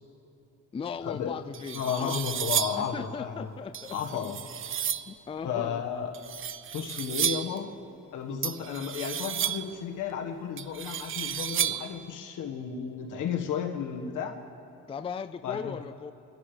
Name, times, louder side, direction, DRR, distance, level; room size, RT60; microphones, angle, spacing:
voice 1, 0.7-2.2 2.7-4.0 5.1-5.8 14.9-16.1, left 6 dB, 20° left, 10 dB, 0.4 m, -37 dB
sound 1, 1.0-1.1 1.5-2.9 3.7-5.1 6.1-7.6 8.4-9.8 10.6-12.0, right 9 dB, 45° right, 0.5 m, -32 dB
voice 2, 1.7-3.5 3.9-4.4 5.4-6.1 6.7-7.7 8.1-14.3 15.4-15.8, left 7 dB, 80° left, 2 dB, 1.6 m, -33 dB
26.0 x 11.0 x 3.4 m, 2.8 s
cardioid pair, 90°, 30 cm